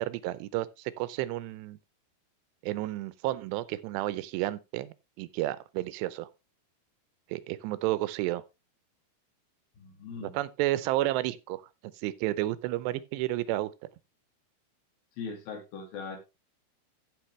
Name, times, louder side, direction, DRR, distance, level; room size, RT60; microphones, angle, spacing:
voice 1, 0.0-1.8 2.6-6.3 7.3-8.4 10.2-13.7, right 16 dB, 85° right, 2.8 m, -31 dB
voice 2, 9.8-10.4 15.2-16.2, left 5 dB, 65° left, 3.8 m, -40 dB
14.5 x 5.8 x 3.1 m
omnidirectional pair, 4.9 m